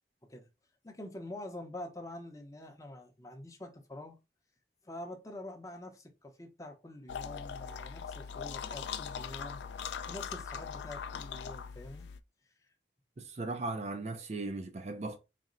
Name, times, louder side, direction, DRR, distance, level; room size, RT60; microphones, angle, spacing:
voice 1, 0.8-4.2 4.8-9.6 10.1-12.1 12.4-12.7, left 1 dB, 20° left, 0.7 m, -46 dB
sound 1, 7.1-12.2, left 7 dB, 85° left, 0.3 m, -41 dB
voice 2, 13.2-15.2, right 2 dB, 40° right, 0.4 m, -37 dB
4.1 x 2.1 x 3.7 m
head